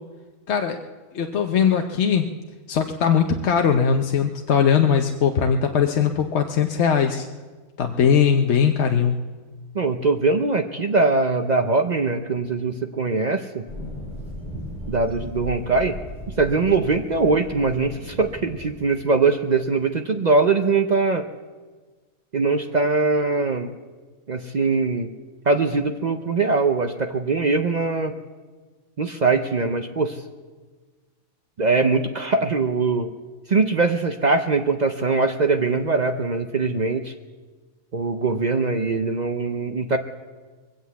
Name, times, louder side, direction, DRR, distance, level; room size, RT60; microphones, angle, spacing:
voice 1, 0.5-0.8 1.1-2.3 2.7-7.2 7.8-9.1, left 7 dB, 60° left, 4 dB, 0.9 m, -20 dB
voice 2, 9.7-13.6 14.9-16.0 16.4-21.3 22.3-23.7 24.3-25.1 25.5-28.1 29.0-30.2 31.6-33.1 33.5-37.1 37.9-40.0, right 3 dB, 45° right, 6 dB, 0.5 m, -22 dB
sound 1, 13.7-18.8, left 1 dB, 5° right, 5.1 m, -36 dB
21.5 x 7.9 x 8.3 m, 1.4 s
omnidirectional pair, 1.4 m